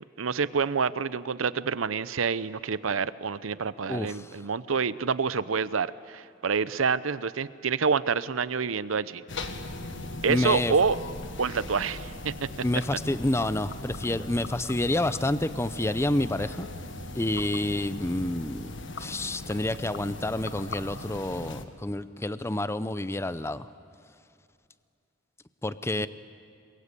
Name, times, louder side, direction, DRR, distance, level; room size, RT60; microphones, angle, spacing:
voice 1, 0.2-9.2 10.2-11.0 11.4-12.5 26.0-26.1, right 5 dB, 90° right, 16 dB, 0.7 m, -27 dB
voice 2, 3.9-4.4 10.3-10.7 12.6-16.7 17.1-18.7 19.0-23.7 25.6-26.1, left 1 dB, 15° left, 13 dB, 0.6 m, -29 dB
sound 1, 9.3-21.7, left 2 dB, 65° left, 1.5 m, -39 dB
28.0 x 22.0 x 8.3 m, 2.4 s
head